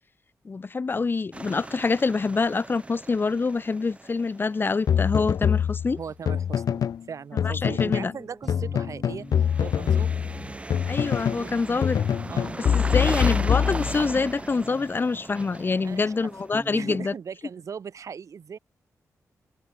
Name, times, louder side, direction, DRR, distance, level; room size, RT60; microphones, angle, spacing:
voice 1, 0.4-6.0 7.3-8.1 10.9-12.0 12.7-17.1, left 4 dB, 35° left, 1.6 m, -26 dB
sound 1, 1.3-5.2 9.3-17.0, right 2 dB, 20° right, 1.9 m, -37 dB
sound 2, 4.9-7.0 7.4-8.1 8.5-11.5 11.8-14.2, left 8 dB, 75° left, 1.1 m, -24 dB
voice 2, 6.0-9.3 9.6-10.2 11.1-11.6 12.3-12.6 15.8-16.4 16.7-18.6, right 6 dB, 60° right, 3.5 m, -39 dB
Guitar, 8.0-17.0, equal, 5° right, 5.3 m, -45 dB
open air
wide cardioid pair, 120°, 6 cm